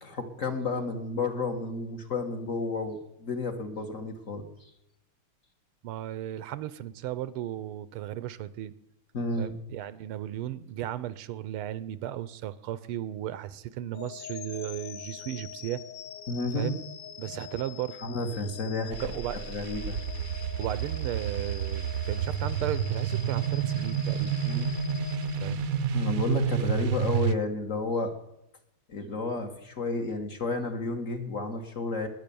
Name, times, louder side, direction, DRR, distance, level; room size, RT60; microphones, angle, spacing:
voice 1, 0.0-4.4 9.1-9.5 16.3-16.8 18.0-19.0 19.5-20.0 24.4-24.7 25.9-28.1 28.9-32.1, left 3 dB, 40° left, 5 dB, 1.6 m, -31 dB
voice 2, 5.8-8.7 9.4-15.8 16.5-16.8 17.2-18.0 19.0-19.5 20.6-24.4 25.3-25.6, right 12 dB, 80° right, 17 dB, 1.6 m, -35 dB
sound 1, 13.9-26.1, left 8 dB, 65° left, 1.4 m, -44 dB
sound 2, 18.9-27.3, right 7 dB, 60° right, 0.9 m, -30 dB
20.5 x 8.4 x 6.9 m, 0.84 s
omnidirectional pair, 2.4 m